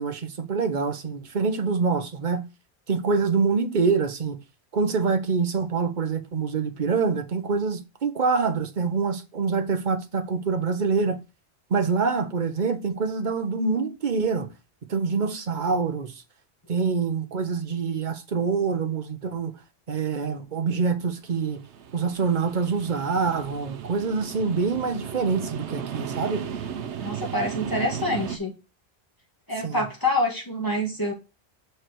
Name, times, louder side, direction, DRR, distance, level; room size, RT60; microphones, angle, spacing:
voice 1, 0.0-2.5 2.9-4.4 4.7-11.2 11.7-14.5 14.9-16.2 16.7-19.5 19.9-21.6 21.9-26.4 29.6-29.9, right 5 dB, 45° right, 1.0 m, -25 dB
sound 1, 21.4-28.4, right 7 dB, 80° right, 1.1 m, -35 dB
voice 2, 27.0-28.5 29.5-31.1, left 1 dB, 20° left, 2.2 m, -26 dB
6.5 x 4.8 x 4.5 m
omnidirectional pair, 1.1 m